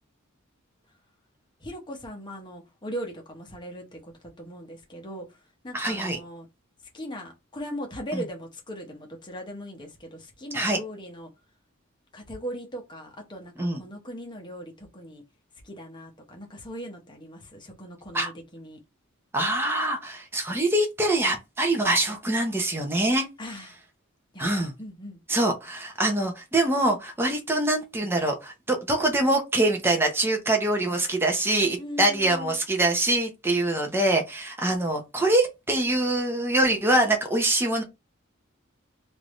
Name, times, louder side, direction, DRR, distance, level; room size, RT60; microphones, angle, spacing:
voice 1, 1.6-4.1 4.4-5.3 5.6-6.5 6.9-11.3 12.1-15.2 15.6-18.8 23.4-23.7 24.3-25.2 31.8-32.6, equal, 20° left, 0.9 m, -39 dB
voice 2, 5.7-6.2 8.1-8.2 10.5-10.8 13.6-13.8 18.1-18.3 19.3-23.3 24.4-24.7 25.3-37.8, right 1 dB, 10° right, 0.7 m, -24 dB
3.3 x 2.6 x 3.1 m
head